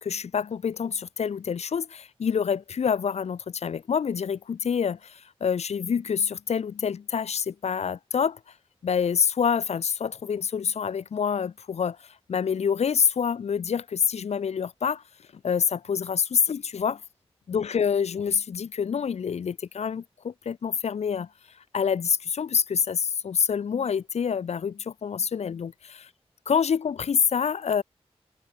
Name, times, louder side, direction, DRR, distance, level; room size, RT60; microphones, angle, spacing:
voice 1, 0.0-8.4 8.8-15.0 15.4-17.0 17.5-21.3 21.7-26.1 26.5-27.8, left 7 dB, 85° left, 0.8 m, -27 dB
wide cardioid pair, 75°, 11 cm